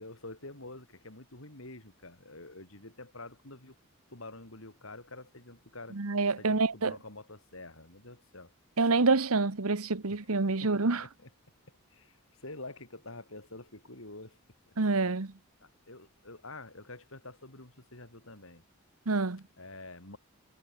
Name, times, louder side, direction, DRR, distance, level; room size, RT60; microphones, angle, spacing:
voice 1, 0.0-3.7 4.1-6.0 6.4-8.5 10.1-10.3 10.6-11.3 11.7-14.4 14.7-14.8 15.6-18.6 19.6-20.2, left 2 dB, 65° left, 5.0 m, -47 dB
voice 2, 5.9-6.9 8.8-11.0 14.8-15.3 19.1-19.4, right 3 dB, 80° right, 1.2 m, -27 dB
head